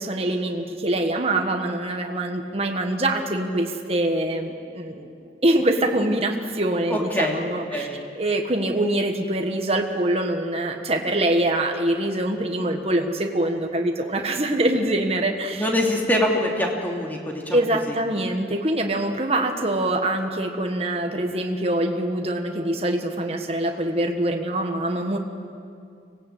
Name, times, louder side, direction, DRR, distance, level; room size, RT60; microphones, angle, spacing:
voice 1, 0.0-5.1 5.4-7.9 8.1-15.7 17.5-25.2, right 1 dB, 35° right, 3 dB, 1.6 m, -24 dB
voice 2, 6.9-7.4 7.7-8.0 15.5-18.0, left 1 dB, 10° left, 0 dB, 3.0 m, -24 dB
25.0 x 18.0 x 8.5 m, 2.4 s
head